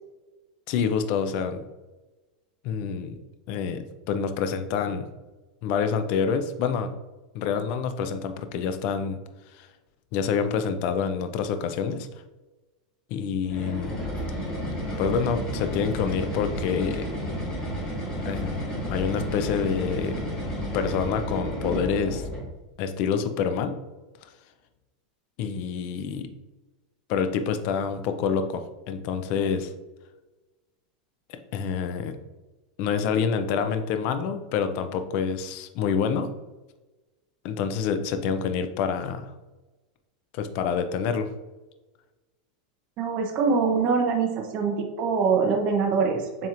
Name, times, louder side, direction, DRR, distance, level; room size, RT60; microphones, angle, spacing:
voice 1, 0.7-1.6 2.6-3.2 3.5-5.1 5.6-6.9 7.3-9.2 9.6-9.7 10.1-12.1 13.1-14.0 15.0-17.1 18.2-20.2 20.7-22.2 22.8-23.8 25.4-26.3 27.1-29.7 31.3-32.2 32.8-36.3 37.4-39.3 40.3-41.3, left 6 dB, 40° left, 8 dB, 0.4 m, -27 dB
sound 1, 13.4-22.5, equal, 20° left, 1.4 m, -31 dB
voice 2, 43.0-46.5, right 5 dB, 30° right, 2 dB, 0.6 m, -24 dB
7.2 x 2.9 x 2.5 m, 1.1 s
supercardioid pair, 170°, 4 cm